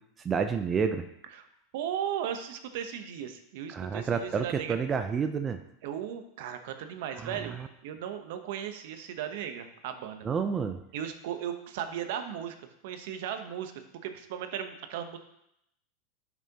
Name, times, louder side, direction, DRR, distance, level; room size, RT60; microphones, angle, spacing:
voice 1, 0.2-1.1 3.7-5.6 7.2-7.4 10.2-10.8, right 6 dB, 25° right, 8 dB, 0.6 m, -29 dB
voice 2, 1.7-4.8 5.8-7.5 7.8-10.2 10.9-12.5 12.8-13.7 14.0-15.2, right 9 dB, 70° right, 8 dB, 0.9 m, -36 dB
10.5 x 6.1 x 2.9 m, 0.79 s
hypercardioid pair, 105°, 0 cm